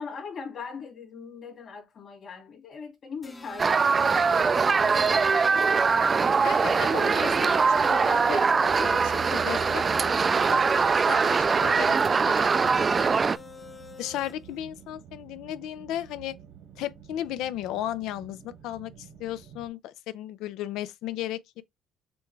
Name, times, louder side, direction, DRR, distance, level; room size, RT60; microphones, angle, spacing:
voice 1, 0.0-5.2, left 5 dB, 50° left, 2.2 m, -41 dB
sound 1, 3.2-14.6, left 6 dB, 25° left, 0.8 m, -44 dB
sound 2, 3.6-13.4, right 5 dB, 35° right, 0.3 m, -22 dB
sound 3, 6.2-19.7, right 8 dB, 75° right, 1.4 m, -50 dB
voice 2, 6.4-12.3 12.6-13.2 14.0-16.4 16.8-21.6, left 12 dB, 80° left, 0.5 m, -36 dB
6.8 x 2.3 x 3.3 m
cardioid pair, 90°, 0 cm